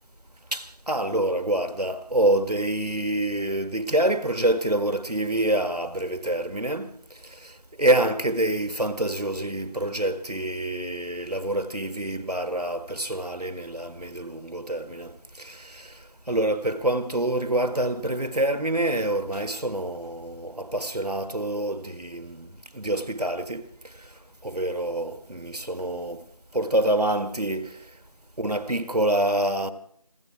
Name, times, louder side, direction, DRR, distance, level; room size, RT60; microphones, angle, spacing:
voice 1, 0.5-6.9 7.4-7.5 7.8-15.9 16.3-23.7 24.4-26.2 26.5-27.8 28.4-29.7, right 1 dB, 85° right, 1.7 m, -26 dB
27.0 x 11.5 x 4.6 m
figure-of-eight pair, 175°, 20 cm